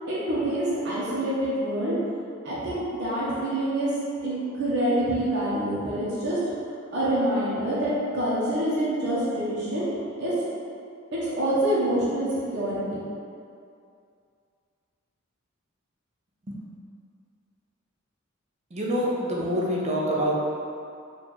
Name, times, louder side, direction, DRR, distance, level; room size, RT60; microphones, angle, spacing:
voice 1, 0.1-1.9 2.4-3.9 4.2-6.4 6.9-9.9 10.2-10.3 11.1-12.3 12.5-13.0, right 1 dB, 55° right, -9 dB, 0.8 m, -26 dB
voice 2, 18.7-20.3, equal, 30° right, -3 dB, 0.6 m, -26 dB
4.2 x 2.4 x 3.0 m, 2.4 s
head